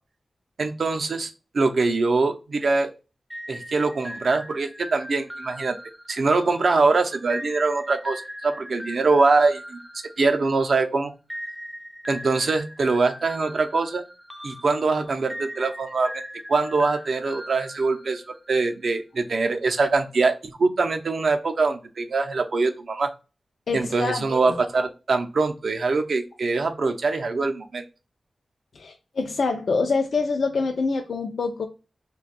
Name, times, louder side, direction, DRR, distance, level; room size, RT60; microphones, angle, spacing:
voice 1, 0.6-1.3 1.5-2.9 3.5-5.8 6.1-9.8 10.2-11.1 12.1-14.0 14.4-16.1 16.5-18.2 18.5-23.1 23.7-27.8, right 3 dB, 70° right, 0.5 m, -23 dB
sound 1, 3.3-10.7 11.3-18.5, equal, ahead, 0.4 m, -40 dB
voice 2, 23.7-24.5 28.8-31.6, left 4 dB, 80° left, 0.3 m, -26 dB
2.5 x 2.2 x 4.0 m
wide cardioid pair, 105°, 0 cm